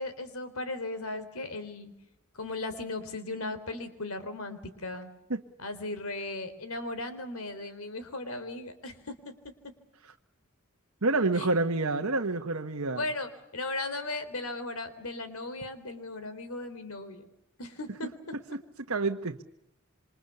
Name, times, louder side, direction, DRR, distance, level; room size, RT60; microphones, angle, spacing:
voice 1, 0.0-1.9 2.3-5.1 5.6-9.3 11.4-11.5 12.9-17.3 17.6-18.3, left 2 dB, 70° left, 11 dB, 3.7 m, -37 dB
voice 2, 11.0-13.0 18.9-19.4, right 3 dB, 70° right, 2 dB, 1.3 m, -28 dB
28.0 x 25.0 x 7.0 m, 0.83 s
head